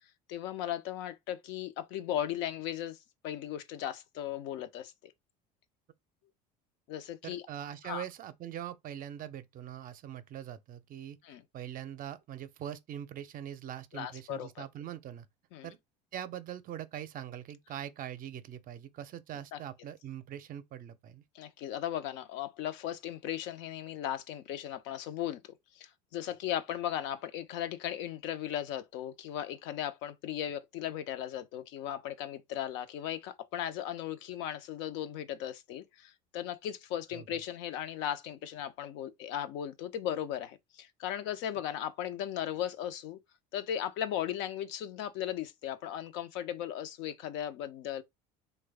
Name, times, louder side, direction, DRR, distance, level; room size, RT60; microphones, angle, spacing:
voice 1, 0.3-3.0 3.2-5.1 6.9-7.4 7.8-8.0 11.2-11.4 13.9-14.7 15.5-15.7 19.5-19.6 21.3-43.2 43.5-48.0, left 11 dB, 65° left, 0.6 m, -37 dB
voice 2, 7.2-15.3 15.6-15.8 16.1-21.2 37.1-37.4, right 10 dB, 45° right, 0.5 m, -42 dB
3.1 x 2.2 x 3.4 m
hypercardioid pair, 80°, 21 cm